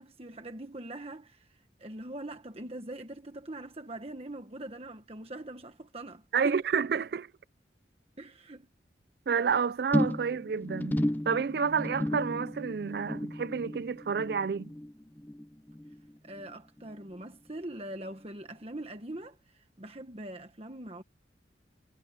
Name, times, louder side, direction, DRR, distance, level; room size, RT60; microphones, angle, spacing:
voice 1, 0.0-6.6 8.2-8.7 16.2-21.0, right 1 dB, 35° right, 1.4 m, -42 dB
voice 2, 6.3-7.3 9.3-11.0 11.3-14.7, right 6 dB, 55° right, 0.4 m, -29 dB
sound 1, 9.9-16.5 16.8-17.2 17.5-17.6, left 1 dB, 10° left, 0.5 m, -34 dB
head